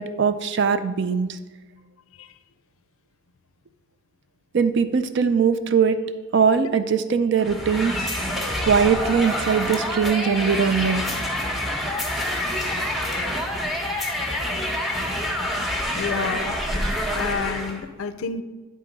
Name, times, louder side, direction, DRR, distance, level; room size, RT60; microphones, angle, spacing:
voice 1, 0.0-1.4 4.5-6.0 6.3-8.1 8.6-11.0, right 6 dB, 55° right, 11 dB, 0.4 m, -21 dB
sound 1, 7.4-17.8, left 1 dB, ahead, 0.8 m, -27 dB
voice 2, 15.9-16.6 17.1-18.4, left 5 dB, 75° left, 11 dB, 0.4 m, -29 dB
10.0 x 3.8 x 5.1 m, 1.3 s
head